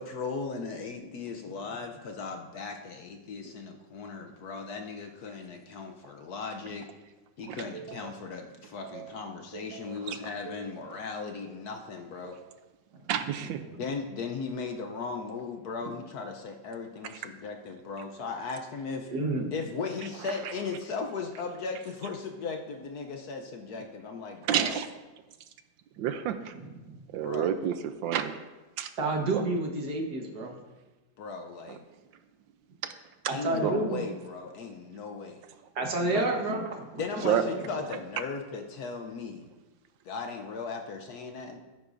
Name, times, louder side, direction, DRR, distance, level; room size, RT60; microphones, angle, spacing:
voice 1, 0.0-6.9 7.4-12.4 13.8-19.1 19.5-24.8 27.2-27.5 31.2-31.8 33.3-35.4 36.1-36.3 37.0-39.5 40.0-41.6, left 4 dB, 65° left, 4 dB, 1.1 m, -37 dB
voice 2, 7.5-8.2 8.8-9.2 9.5-10.2 10.5-10.7 12.2-12.3 13.1-13.6 24.5-24.9 26.0-26.5 27.1-28.4 28.8-28.9 29.3-29.4 31.7-31.8 32.8-32.9 33.6-33.7 37.2-37.4, right 10 dB, 80° right, 9 dB, 1.3 m, -30 dB
voice 3, 19.1-19.5 26.8-26.9 29.0-30.6 33.3-34.0 35.8-37.0, right 2 dB, 60° right, 1 dB, 1.8 m, -29 dB
14.5 x 9.5 x 2.6 m, 1.2 s
omnidirectional pair, 2.1 m